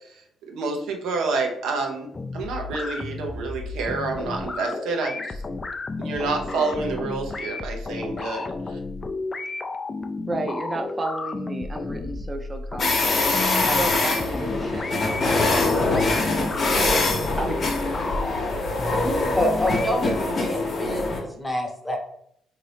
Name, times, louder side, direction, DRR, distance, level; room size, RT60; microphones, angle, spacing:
voice 1, 0.4-5.4 6.0-8.8, right 3 dB, 85° right, 2 dB, 0.7 m, -28 dB
sound 1, 2.1-19.9, left 3 dB, 30° left, 0.3 m, -32 dB
voice 2, 10.3-17.1 17.4-18.1 19.0-19.3, right 2 dB, 30° right, 5 dB, 0.6 m, -33 dB
sound 2, 12.8-21.2, left 2 dB, 50° left, 0.9 m, -24 dB
voice 3, 19.3-22.0, equal, 10° left, 2 dB, 0.8 m, -27 dB
3.7 x 2.7 x 3.3 m, 0.72 s
cardioid pair, 90°, 0 cm